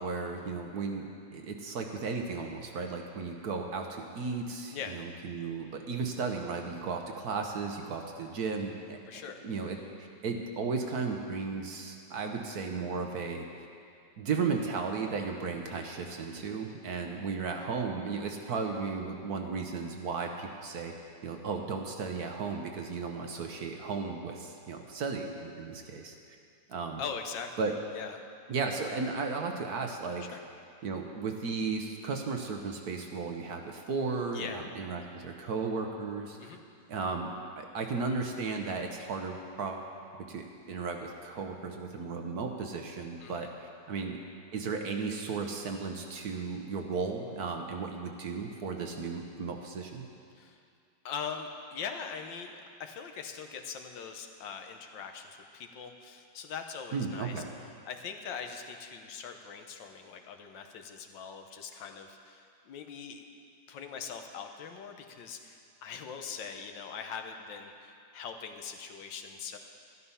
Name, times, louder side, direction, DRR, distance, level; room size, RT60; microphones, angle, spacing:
voice 1, 0.0-9.0 9.4-13.7 14.2-20.9 21.2-26.1 26.7-27.0 27.6-27.7 28.5-30.4 30.8-36.6 36.9-39.9 40.1-44.2 44.5-50.1 56.9-57.5, right 4 dB, 60° right, 3 dB, 1.3 m, -35 dB
voice 2, 9.1-9.4 27.0-27.6 27.9-28.3 30.2-30.4 34.3-34.7 36.4-36.6 43.2-43.5 50.3-50.6 51.0-57.4 57.8-63.2 63.7-69.6, left 6 dB, 75° left, 5 dB, 1.5 m, -42 dB
12.5 x 12.5 x 5.6 m, 2.4 s
omnidirectional pair, 2.1 m